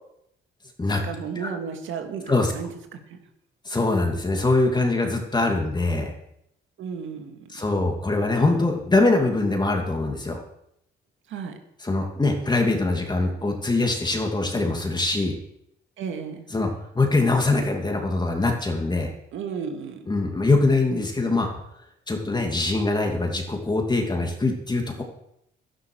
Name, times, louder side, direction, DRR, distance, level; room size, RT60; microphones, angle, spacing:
voice 1, 0.9-2.7 3.1-3.2 6.8-7.4 11.3-11.6 16.0-16.4 19.3-20.1, right 6 dB, 80° right, 5 dB, 2.1 m, -33 dB
voice 2, 3.7-6.1 7.5-10.4 11.8-15.4 16.5-19.1 20.1-21.5 22.1-25.0, left 2 dB, 20° left, 2 dB, 2.5 m, -23 dB
11.5 x 10.0 x 6.3 m, 0.77 s
cardioid pair, 90°, 20 cm